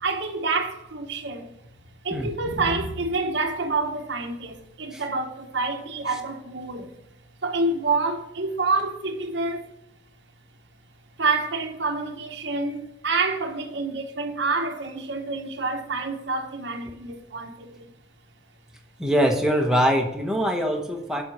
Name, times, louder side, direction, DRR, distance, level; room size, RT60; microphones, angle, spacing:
voice 1, 0.0-1.5 2.0-6.9 7.4-9.7 11.2-17.9, right 3 dB, 60° right, 0.9 m, -27 dB
voice 2, 19.0-21.2, equal, 5° right, 0.9 m, -23 dB
7.6 x 4.3 x 6.0 m
head